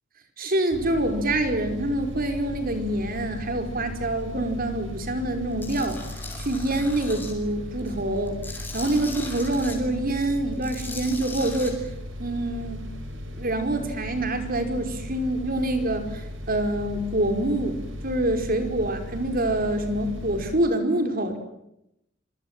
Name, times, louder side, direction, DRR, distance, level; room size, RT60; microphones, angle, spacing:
voice 1, 0.4-6.0 6.4-8.4 8.7-11.8 12.2-12.8 13.4-17.8 18.0-21.4, right 1 dB, 45° right, 7 dB, 5.0 m, -26 dB
sound 1, 0.7-20.5, left 1 dB, 65° right, 6.6 m, -37 dB
Tools, 5.6-7.3 7.8-9.8 10.5-11.7, left 3 dB, 10° left, 7.1 m, -39 dB
27.0 x 25.0 x 7.6 m, 0.82 s
head